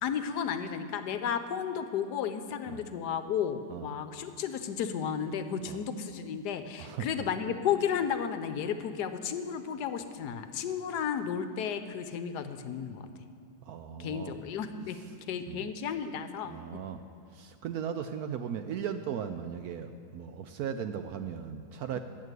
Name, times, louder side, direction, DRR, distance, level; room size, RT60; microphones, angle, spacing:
voice 1, 0.0-13.1 14.0-15.0 15.3-16.8, left 7 dB, 70° left, 9 dB, 1.2 m, -33 dB
voice 2, 13.6-14.4 15.5-15.7 16.4-17.0 17.3-22.0, right 8 dB, 70° right, 8 dB, 0.9 m, -37 dB
10.5 x 7.5 x 8.0 m, 2.5 s
omnidirectional pair, 1.9 m